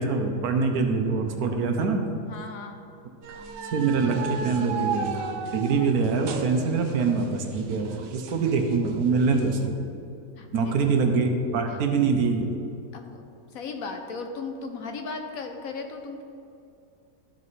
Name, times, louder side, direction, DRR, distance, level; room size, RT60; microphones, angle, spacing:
voice 1, 0.0-2.0 3.7-9.8 10.5-12.5, right 4 dB, 65° right, 4 dB, 1.2 m, -24 dB
voice 2, 2.3-2.8 10.3-10.7 12.9-13.3 13.5-16.2, left 4 dB, 65° left, 4 dB, 1.0 m, -36 dB
sound 1, 3.2-9.7, right 6 dB, 85° right, 1.3 m, -36 dB
12.5 x 4.7 x 4.1 m, 2.6 s
omnidirectional pair, 1.8 m